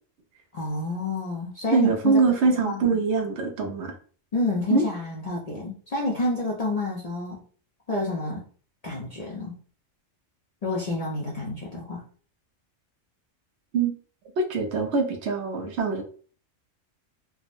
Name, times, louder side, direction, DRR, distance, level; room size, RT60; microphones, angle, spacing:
voice 1, 0.5-2.2 2.4-3.0 4.3-7.4 7.9-8.4 8.8-9.5 10.6-12.0, left 2 dB, 50° left, -4 dB, 0.5 m, -29 dB
voice 2, 1.7-3.9 4.7-4.8 13.7-13.9 14.4-16.0, right 4 dB, 70° right, 5 dB, 0.8 m, -23 dB
3.5 x 2.0 x 2.5 m, 0.43 s
omnidirectional pair, 1.3 m